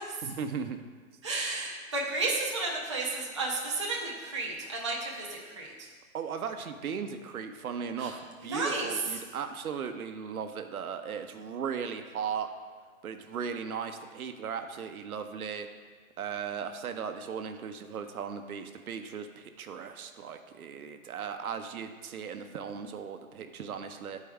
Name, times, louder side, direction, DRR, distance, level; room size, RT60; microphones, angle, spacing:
voice 1, 0.2-0.8 6.1-12.5 13.0-15.7 16.2-24.2, right 6 dB, 80° right, 7 dB, 0.8 m, -37 dB
voice 2, 1.2-5.9 8.0-8.9, right 3 dB, 20° right, -4 dB, 0.5 m, -33 dB
9.7 x 4.6 x 3.5 m, 1.5 s
hypercardioid pair, 170°, 42 cm